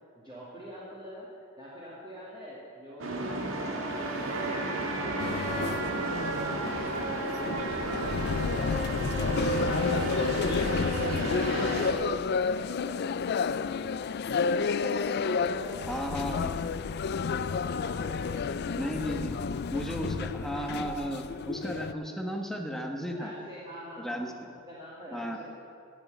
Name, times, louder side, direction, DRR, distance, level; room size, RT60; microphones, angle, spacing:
voice 1, 0.1-3.3 3.5-7.0 7.4-9.8 10.3-13.9 14.4-15.9 17.2-19.6 23.1-24.2 24.7-25.4, equal, 20° right, -8 dB, 2.4 m, -46 dB
sound 1, 3.0-11.9, right 2 dB, 70° right, 1.7 m, -32 dB
sound 2, 5.2-21.9, left 5 dB, 55° left, 0.4 m, -31 dB
voice 2, 15.9-16.6 18.8-19.3 19.7-23.3 24.0-24.3 25.1-25.4, equal, ahead, 2 dB, 1.2 m, -34 dB
16.5 x 6.5 x 9.2 m, 2.5 s
head